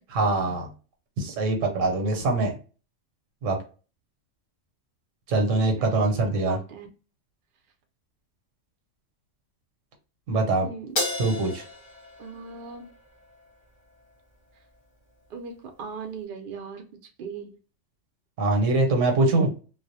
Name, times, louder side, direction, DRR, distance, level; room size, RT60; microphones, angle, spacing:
voice 1, 0.1-0.7 1.2-2.5 3.4-3.6 5.3-6.6 10.3-10.7 11.2-11.6 18.4-19.5, right 2 dB, 85° right, 3 dB, 1.0 m, -23 dB
voice 2, 5.6-6.1 6.4-6.9 10.6-11.0 12.2-12.9 15.3-17.6, right 5 dB, 60° right, 4 dB, 0.6 m, -39 dB
Crash cymbal, 11.0-13.5, left 2 dB, 35° left, 0.7 m, -33 dB
2.3 x 2.0 x 2.5 m, 0.36 s
omnidirectional pair, 1.3 m